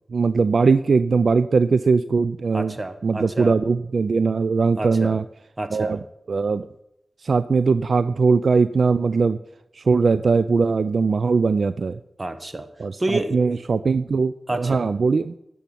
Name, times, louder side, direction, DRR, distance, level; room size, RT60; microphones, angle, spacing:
voice 1, 0.1-2.7 3.0-5.2 5.7-6.0 6.3-6.7 7.2-9.4 9.8-12.0 12.8-13.0 13.3-15.3, right 4 dB, 70° right, 13 dB, 0.3 m, -20 dB
voice 2, 2.5-3.6 4.8-5.2 5.6-6.0 12.2-12.7 13.0-13.6 14.5-14.8, right 2 dB, 35° right, 9 dB, 1.4 m, -29 dB
10.5 x 7.0 x 7.6 m, 0.85 s
cardioid pair, 45°, 0 cm